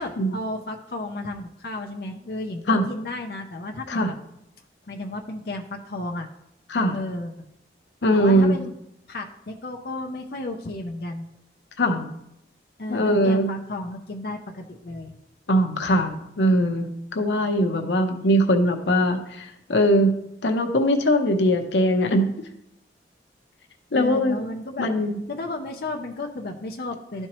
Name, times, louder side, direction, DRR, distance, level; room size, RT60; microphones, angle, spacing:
voice 1, 0.0-4.2 4.9-6.3 6.9-7.3 8.1-8.7 9.1-11.3 12.8-15.1 17.7-18.1 23.9-24.9 25.3-27.3, left 2 dB, 55° left, 2 dB, 0.5 m, -33 dB
voice 2, 8.0-8.6 11.8-12.1 12.9-13.5 15.5-20.2 20.4-22.3 23.9-24.4 24.8-25.2, equal, 85° left, 5 dB, 0.8 m, -21 dB
12.0 x 4.4 x 3.0 m, 0.80 s
head